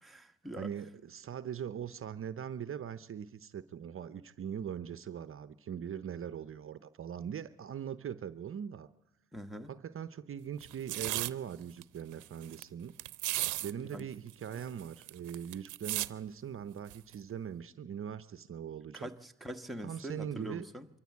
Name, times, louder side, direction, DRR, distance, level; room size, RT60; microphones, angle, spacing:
voice 1, 0.0-0.7 9.3-9.7 13.8-14.1 14.5-14.6 18.9-20.9, equal, ahead, 1.2 m, -43 dB
voice 2, 0.6-8.9 9.7-13.0 13.6-19.1 19.8-20.7, right 8 dB, 45° right, 0.7 m, -41 dB
sound 1, 10.6-11.3 11.8-11.9 12.1-12.6 13.0-13.7 14.0-14.1 14.3-16.1 16.9-17.1, right 17 dB, 85° right, 0.6 m, -35 dB
23.0 x 14.0 x 8.4 m
cardioid pair, 90°, 30 cm